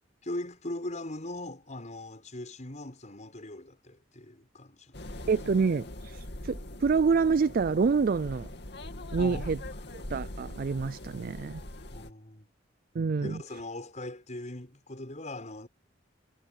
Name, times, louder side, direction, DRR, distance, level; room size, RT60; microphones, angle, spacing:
voice 1, 0.2-5.0 9.2-9.9 11.9-12.5 13.2-15.7, left 1 dB, 40° left, 6.5 m, -40 dB
sound 1, 4.9-12.1, left 1 dB, 65° left, 2.7 m, -42 dB
voice 2, 5.3-8.5 9.1-9.6 10.1-11.6 13.0-13.4, right 5 dB, 50° right, 0.4 m, -27 dB
head